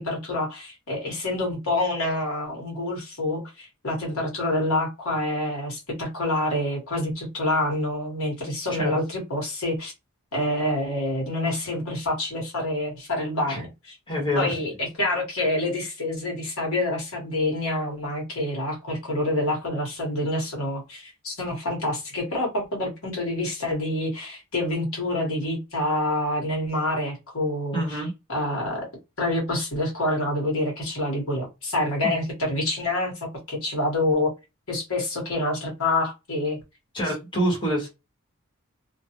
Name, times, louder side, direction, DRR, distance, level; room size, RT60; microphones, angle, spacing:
voice 1, 0.0-9.9 10.3-13.7 14.3-28.0 28.3-28.9 29.2-34.3 34.7-36.6, left 1 dB, 65° left, 1.1 m, -27 dB
voice 2, 14.1-14.5 27.7-28.1 32.0-32.2 36.9-37.9, equal, 20° left, 1.1 m, -26 dB
2.3 x 2.2 x 2.8 m
head